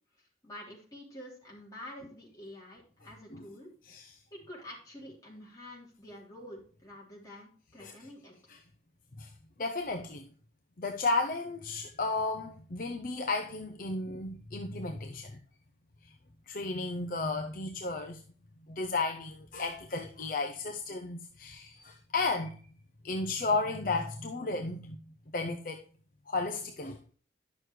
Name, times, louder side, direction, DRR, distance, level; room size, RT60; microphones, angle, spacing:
voice 1, 0.4-3.7 4.3-8.5, left 1 dB, 20° left, 3.2 m, -48 dB
voice 2, 3.8-4.2 7.8-8.0 8.5-8.6 9.2-9.3 9.6-10.3 10.8-15.4 16.0-16.1 16.5-18.2 18.7-22.6 23.0-25.0 25.3-25.8 26.3-27.0, left 3 dB, 50° left, 0.6 m, -33 dB
10.5 x 6.3 x 3.1 m
head